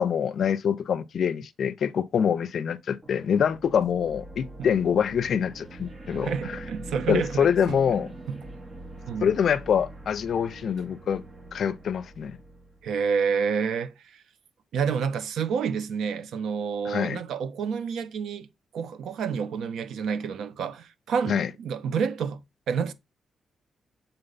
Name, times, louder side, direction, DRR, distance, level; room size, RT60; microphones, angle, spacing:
voice 1, 0.0-6.6 7.1-8.1 9.2-11.2 11.5-12.4 16.8-17.2 21.3-21.5, left 7 dB, 50° left, 0.5 m, -25 dB
sound 1, 3.0-13.2, right 2 dB, 25° right, 0.8 m, -43 dB
voice 2, 6.1-7.8 8.3-8.4 9.1-9.3 12.8-14.2 14.7-18.5 18.7-22.4 22.7-22.9, right 6 dB, 80° right, 0.9 m, -29 dB
7.9 x 3.9 x 4.0 m
wide cardioid pair, 170°, 0 cm